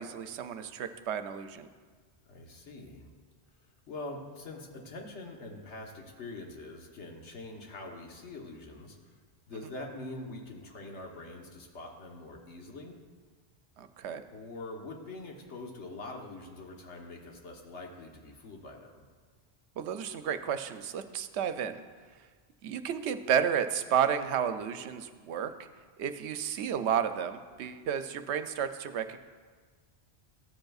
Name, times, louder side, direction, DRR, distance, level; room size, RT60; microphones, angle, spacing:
voice 1, 0.0-1.7 13.8-14.2 19.8-21.8 22.6-25.5 26.0-29.2, right 8 dB, 80° right, 10 dB, 0.9 m, -32 dB
voice 2, 2.3-3.1 3.9-9.0 9.5-12.9 14.3-19.0, left 2 dB, 90° left, 1 dB, 1.4 m, -44 dB
14.5 x 7.8 x 2.4 m, 1.5 s
omnidirectional pair, 1.1 m